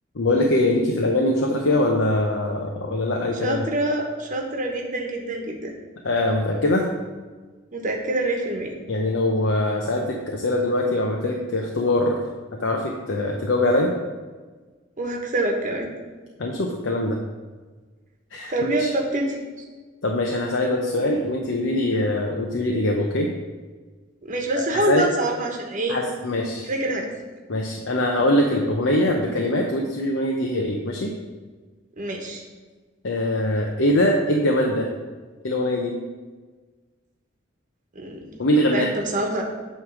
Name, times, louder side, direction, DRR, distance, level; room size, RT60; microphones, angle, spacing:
voice 1, 0.1-3.6 6.0-6.9 8.9-12.2 12.6-13.9 16.4-17.2 18.3-18.5 18.8-18.9 20.0-23.3 24.9-25.0 25.9-26.7 27.5-31.1 33.0-34.9 35.4-35.9 38.4-38.9, left 1 dB, 85° left, 0 dB, 0.8 m, -22 dB
voice 2, 3.4-5.7 7.7-8.7 15.0-15.9 18.5-19.4 24.2-26.0 26.7-27.0 32.0-32.4 37.9-39.4, right 1 dB, 45° right, 1 dB, 1.1 m, -26 dB
9.1 x 3.3 x 6.3 m, 1.4 s
head